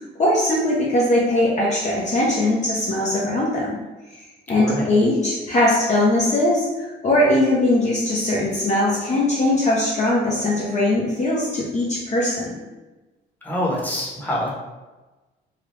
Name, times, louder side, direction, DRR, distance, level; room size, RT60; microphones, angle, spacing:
voice 1, 0.2-3.8 4.5-12.5, left 1 dB, 35° left, -5 dB, 0.7 m, -20 dB
voice 2, 13.4-14.5, equal, 10° left, -5 dB, 1.0 m, -25 dB
3.2 x 2.3 x 3.0 m, 1.1 s
cardioid pair, 90°, 20 cm